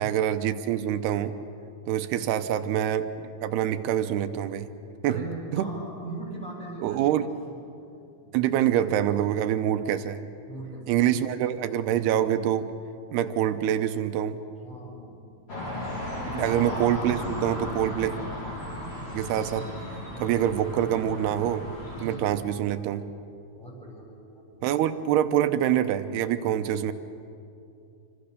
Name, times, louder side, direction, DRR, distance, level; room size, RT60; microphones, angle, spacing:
voice 1, 0.0-1.3 1.9-4.7 5.0-5.2 5.5-5.7 6.8-7.3 8.3-10.2 10.9-12.7 13.1-14.4 16.3-18.1 19.1-19.7 20.2-21.7 22.0-23.0 24.6-26.9, right 11 dB, 90° right, 10 dB, 2.9 m, -25 dB
voice 2, 5.1-7.1 7.9-8.4 10.5-11.4 14.6-15.3 16.3-16.6 22.0-22.2 23.5-24.7, right 2 dB, ahead, -2 dB, 6.9 m, -41 dB
sound 1, 15.5-22.2, left 1 dB, 25° left, 5.3 m, -35 dB
27.0 x 26.0 x 6.7 m, 2.6 s
omnidirectional pair, 4.6 m